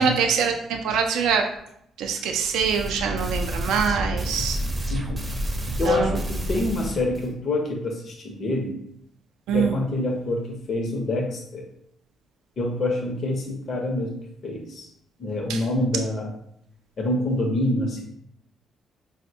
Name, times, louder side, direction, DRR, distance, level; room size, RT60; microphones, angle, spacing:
voice 1, 0.0-1.5 2.0-4.6 5.9-6.2 9.5-9.8 15.5-15.6, right 6 dB, 90° right, 3 dB, 0.3 m, -24 dB
sound 1, 2.4-7.3, equal, 20° right, 0.5 m, -29 dB
voice 2, 4.9-5.4 5.7-8.8 9.5-11.7 12.6-14.2 14.4-14.9 15.2-16.3 17.0-18.0, left 1 dB, 50° left, 0 dB, 0.6 m, -26 dB
4.2 x 2.1 x 2.6 m, 0.73 s
cardioid pair, 90°, 0 cm